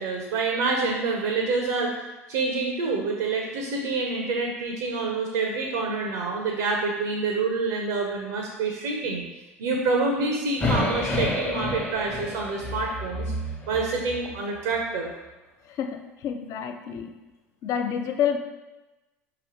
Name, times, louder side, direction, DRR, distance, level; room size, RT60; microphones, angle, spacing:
voice 1, 0.0-2.0 2.3-9.2 9.6-13.3 13.7-15.1, right 3 dB, 65° right, 1 dB, 0.6 m, -27 dB
sound 1, 10.6-14.8, left 2 dB, 20° left, 0.8 m, -30 dB
voice 2, 15.6-17.1 17.6-18.4, left 8 dB, 45° left, 6 dB, 0.4 m, -28 dB
4.7 x 2.9 x 3.0 m, 1.1 s
figure-of-eight pair, 70°, 8 cm